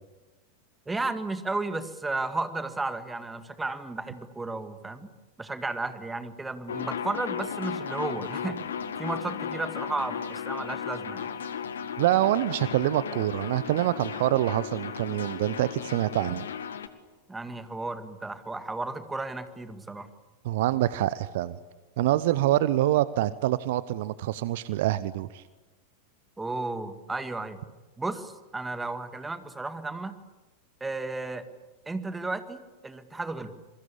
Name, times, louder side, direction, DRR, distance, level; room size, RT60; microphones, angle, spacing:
voice 1, 0.9-5.1 5.4-8.7 9.0-11.3 17.3-20.1 26.4-27.6 28.0-30.2 30.8-31.4 31.9-33.5, right 3 dB, 10° right, 10 dB, 2.0 m, -33 dB
sound 1, 6.7-16.9, left 7 dB, 65° left, 1.8 m, -35 dB
voice 2, 12.0-16.5 20.4-21.6 22.0-25.4, right 14 dB, 55° right, 17 dB, 0.8 m, -26 dB
27.0 x 22.5 x 8.6 m, 1.1 s
figure-of-eight pair, 90°, 0 cm